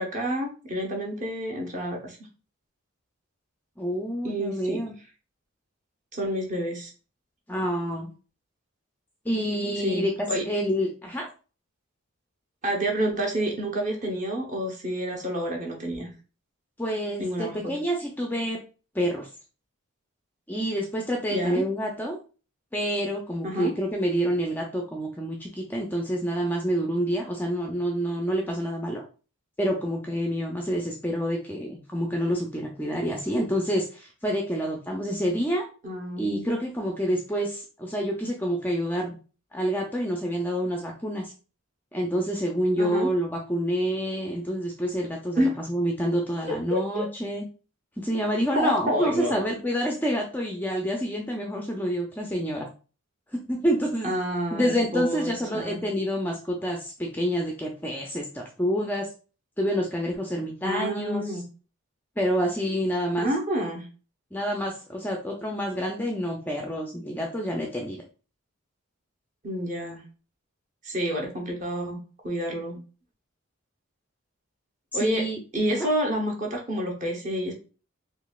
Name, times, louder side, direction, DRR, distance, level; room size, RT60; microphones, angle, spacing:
voice 1, 0.0-2.2 4.2-4.8 6.1-6.9 9.8-10.4 12.6-16.1 17.2-17.7 21.3-21.6 23.4-23.7 35.8-36.4 42.8-43.1 45.4-45.6 46.5-47.0 48.5-49.4 54.0-55.8 60.6-61.4 63.2-63.9 69.4-70.0 70.8-72.8 74.9-75.2 75.5-77.5, equal, 35° right, 1 dB, 0.8 m, -29 dB
voice 2, 3.8-4.9 7.5-8.1 9.3-11.3 16.8-18.6 18.9-19.3 20.5-22.2 22.7-29.0 29.6-35.7 36.2-39.2 39.5-41.3 41.9-45.4 45.7-47.4 48.0-52.7 53.5-54.1 54.5-59.1 59.6-61.4 62.2-63.3 64.3-68.0 74.9-75.4 75.7-75.9, equal, 10° left, 1 dB, 0.3 m, -28 dB
3.9 x 2.8 x 2.3 m, 0.35 s
head